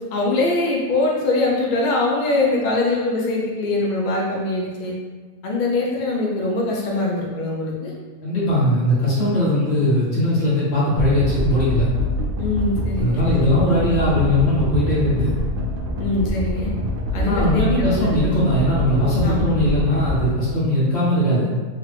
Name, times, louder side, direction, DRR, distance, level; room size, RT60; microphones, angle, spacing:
voice 1, 0.1-5.0 5.4-7.9 12.4-13.6 16.0-16.7 17.1-17.9 19.2-19.5, left 2 dB, 65° left, -2 dB, 0.4 m, -22 dB
voice 2, 8.2-11.9 13.0-15.3 17.2-21.5, left 1 dB, 50° left, -8 dB, 1.4 m, -19 dB
sound 1, 11.0-20.4, equal, 80° right, 0.4 m, -25 dB
3.2 x 2.4 x 3.3 m, 1.4 s
omnidirectional pair, 1.5 m